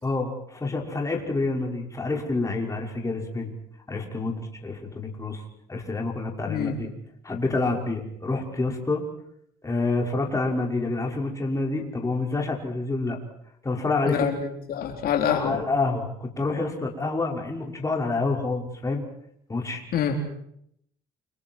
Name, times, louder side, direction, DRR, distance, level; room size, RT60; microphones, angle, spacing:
voice 1, 0.0-3.5 3.9-5.4 5.7-6.9 7.2-9.0 9.6-13.2 13.6-14.2 15.3-19.0 19.5-19.8, left 3 dB, 20° left, 1 dB, 5.8 m, -28 dB
voice 2, 14.1-15.6 19.9-20.2, left 8 dB, 65° left, 2 dB, 4.2 m, -26 dB
30.0 x 25.5 x 4.8 m, 0.70 s
cardioid pair, 110°, 17 cm